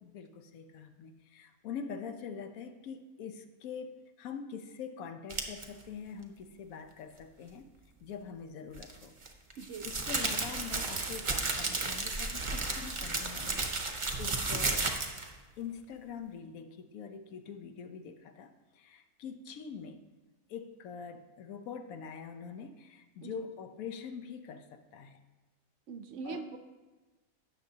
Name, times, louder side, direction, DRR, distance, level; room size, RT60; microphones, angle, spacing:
voice 1, 0.0-7.7 8.0-9.1 9.6-14.9 15.6-20.0 20.5-25.2 26.2-26.4, left 6 dB, 70° left, 9 dB, 1.1 m, -44 dB
sound 1, 5.3-5.6 8.7-15.3, right 3 dB, 30° right, 0.7 m, -33 dB
voice 2, 25.9-26.6, right 5 dB, 65° right, 8 dB, 0.8 m, -41 dB
17.0 x 6.7 x 2.8 m, 1.2 s
omnidirectional pair, 1.6 m